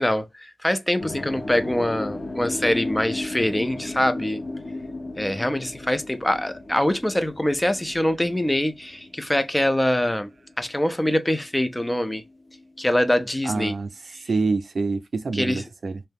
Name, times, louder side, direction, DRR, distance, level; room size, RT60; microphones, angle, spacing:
voice 1, 0.0-4.4 5.2-10.3 10.6-12.2 12.8-13.7 15.3-15.6, left 1 dB, 10° left, 0.4 m, -24 dB
sound 1, 1.0-11.1 11.4-13.0, left 2 dB, 60° left, 0.7 m, -35 dB
voice 2, 13.4-13.9 14.3-16.0, right 3 dB, 70° right, 0.5 m, -26 dB
2.7 x 2.2 x 3.4 m
wide cardioid pair, 120°, 0 cm